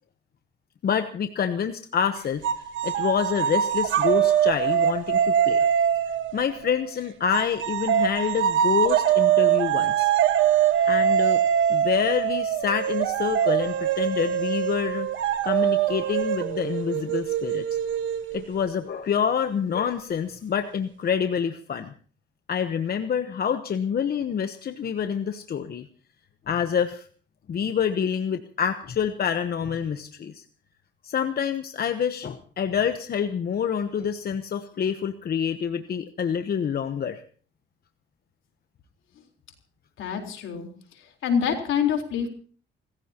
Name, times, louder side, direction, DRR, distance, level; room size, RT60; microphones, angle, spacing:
voice 1, 0.8-5.6 6.3-10.1 10.9-11.4 11.7-15.1 15.4-17.6 18.3-21.9 22.5-25.8 26.5-27.0 27.5-30.4 31.0-37.2, left 7 dB, 50° left, 9 dB, 1.1 m, -27 dB
sound 1, 2.4-6.8 7.3-18.7, right 9 dB, 75° right, 1.5 m, -23 dB
voice 2, 40.0-40.7 41.2-42.3, left 7 dB, 80° left, 3 dB, 4.0 m, -25 dB
29.0 x 15.0 x 2.9 m, 0.43 s
cardioid pair, 90°, 20 cm